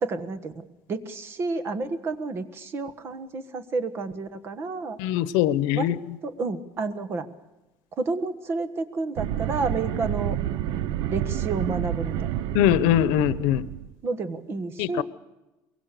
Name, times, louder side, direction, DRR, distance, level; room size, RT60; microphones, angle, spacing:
voice 1, 0.0-0.6 0.9-5.0 5.7-5.9 6.2-7.3 8.0-10.4 11.1-12.3 14.0-15.0, right 3 dB, 30° right, 11 dB, 1.4 m, -30 dB
voice 2, 5.0-5.9 12.5-13.6 14.8-15.0, left 12 dB, 85° left, 17 dB, 0.9 m, -22 dB
sound 1, 9.2-13.9, right 11 dB, 65° right, 0.7 m, -29 dB
23.0 x 22.5 x 6.8 m, 1.0 s
cardioid pair, 170°, 8 cm